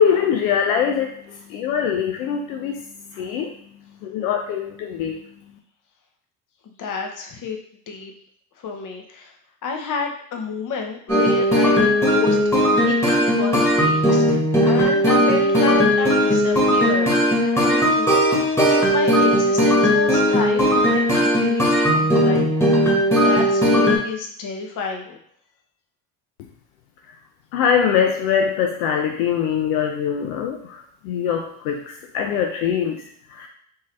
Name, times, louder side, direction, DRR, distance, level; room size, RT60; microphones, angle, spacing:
voice 1, 0.0-5.6 27.5-33.5, left 7 dB, 85° left, 3 dB, 0.5 m, -23 dB
voice 2, 6.6-7.6 7.9-8.1 8.6-9.3 9.6-14.2 14.6-22.6 23.2-25.2, left 5 dB, 50° left, 3 dB, 0.9 m, -30 dB
sound 1, 11.1-24.0, equal, 5° left, 1.2 m, -18 dB
3.7 x 2.7 x 3.1 m, 0.66 s
hypercardioid pair, 65°, 42 cm